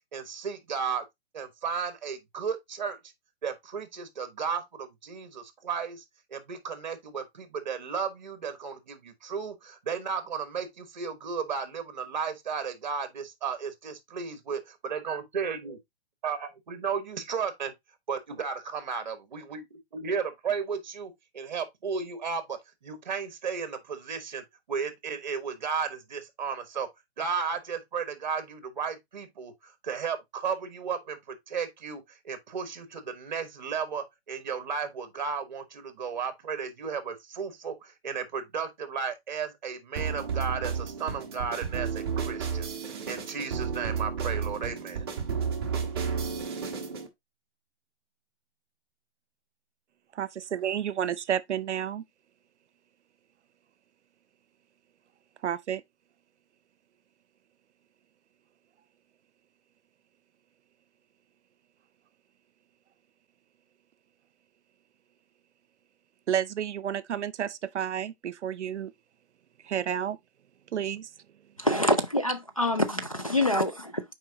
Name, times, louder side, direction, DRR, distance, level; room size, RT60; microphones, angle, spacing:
voice 1, 0.1-1.1 1.3-3.0 3.4-6.0 6.3-15.8 16.2-17.7 18.1-19.6 19.9-26.9 27.2-45.0, right 6 dB, 40° right, 1.3 m, -34 dB
sound 1, 40.0-47.1, right 6 dB, 20° right, 1.1 m, -32 dB
voice 2, 50.2-52.0 55.4-55.8 66.3-68.9 69.6-70.2 70.7-71.1, right 9 dB, 85° right, 0.7 m, -30 dB
voice 3, 71.6-74.0, left 1 dB, 35° left, 0.4 m, -26 dB
7.3 x 4.7 x 2.7 m
hypercardioid pair, 175°, 34 cm